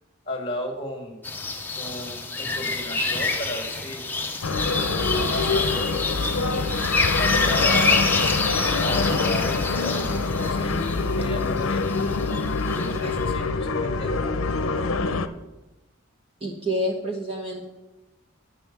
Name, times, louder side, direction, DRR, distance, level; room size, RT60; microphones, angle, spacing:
voice 1, 0.3-1.3 1.8-4.0 4.6-6.8 7.2-8.1 8.8-11.9 12.7-14.2, left 1 dB, 25° left, 4 dB, 1.9 m, -35 dB
sound 1, 1.2-13.2, left 3 dB, 10° left, 0.8 m, -27 dB
sound 2, 4.4-15.3, left 3 dB, 75° left, 0.6 m, -25 dB
voice 2, 16.4-17.6, equal, 25° right, -1 dB, 1.1 m, -28 dB
10.5 x 5.6 x 7.3 m, 1.0 s
head